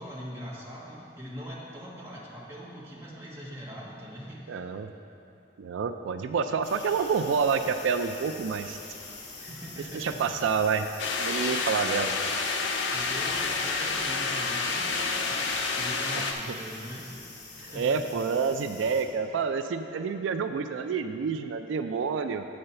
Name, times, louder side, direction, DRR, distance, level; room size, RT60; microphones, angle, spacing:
voice 1, 0.0-4.7 9.3-10.4 12.9-15.5 15.8-17.1 17.5-18.0, equal, 15° right, -6 dB, 1.3 m, -42 dB
voice 2, 4.5-4.9 5.6-8.8 9.9-10.9 11.2-12.1 16.1-16.3 17.7-22.5, right 5 dB, 90° right, 8 dB, 0.3 m, -28 dB
sound 1, 6.6-19.0, left 3 dB, 60° left, 1.2 m, -46 dB
sound 2, 11.0-16.3, left 4 dB, 80° left, 0.7 m, -29 dB
7.8 x 4.3 x 6.7 m, 3.0 s
head